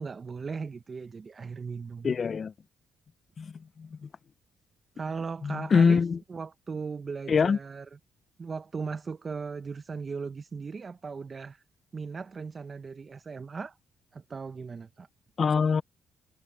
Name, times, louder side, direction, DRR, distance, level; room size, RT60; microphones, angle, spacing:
voice 1, 0.0-2.1 4.9-6.0 6.3-8.0 8.4-11.6 11.9-13.8 14.1-15.1, right 5 dB, 35° right, 0.7 m, -37 dB
voice 2, 2.0-2.5 3.4-3.5 3.8-3.9 5.4-6.2 7.3-7.6 15.4-15.8, left 5 dB, 45° left, 0.6 m, -23 dB
cardioid pair, 90°, 0 cm